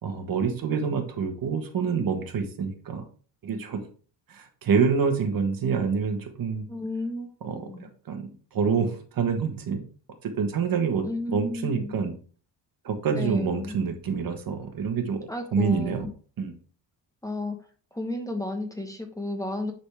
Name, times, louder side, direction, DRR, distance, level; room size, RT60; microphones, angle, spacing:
voice 1, 0.0-3.0 3.4-3.8 4.3-6.7 7.4-9.8 10.2-12.1 12.8-15.2 15.5-16.1 16.4-16.5, right 6 dB, 50° right, 6 dB, 1.3 m, -27 dB
voice 2, 6.7-7.3 7.6-7.8 11.0-11.9 13.1-13.7 15.3-16.1 17.2-17.6 17.9-19.7, left 2 dB, 10° left, 3 dB, 1.1 m, -32 dB
9.9 x 4.1 x 3.4 m, 0.41 s
cardioid pair, 135°, 43 cm